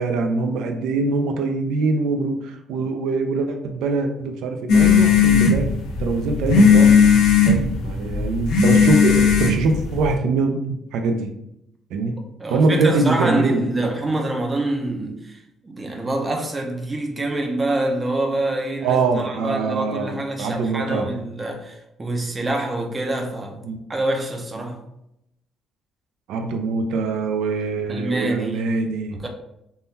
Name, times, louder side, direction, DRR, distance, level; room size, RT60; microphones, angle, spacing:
voice 1, 0.0-5.7 6.0-6.9 7.5-10.6 10.9-11.3 11.9-12.2 12.5-13.9 18.8-21.1 23.6-23.8 26.3-29.2, right 3 dB, 85° right, 0.4 m, -23 dB
sound 1, 4.7-10.1, left 6 dB, 85° left, 0.6 m, -16 dB
voice 2, 12.4-23.6 23.9-24.8 27.9-28.7 29.2-29.3, right 1 dB, 20° right, 0.5 m, -26 dB
3.5 x 2.2 x 2.6 m
cardioid pair, 140°, 0 cm